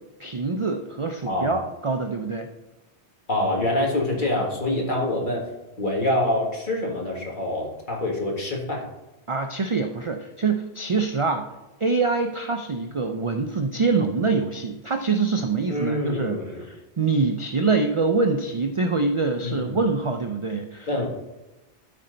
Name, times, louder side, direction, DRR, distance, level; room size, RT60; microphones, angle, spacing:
voice 1, 0.2-2.5 9.3-11.5 11.8-20.9, right 4 dB, 40° right, 5 dB, 0.4 m, -25 dB
voice 2, 3.3-5.5 5.8-8.9 15.7-16.6 19.4-19.7 20.9-21.1, left 1 dB, 50° left, -2 dB, 1.9 m, -25 dB
12.5 x 4.3 x 3.9 m, 1.0 s
omnidirectional pair, 1.1 m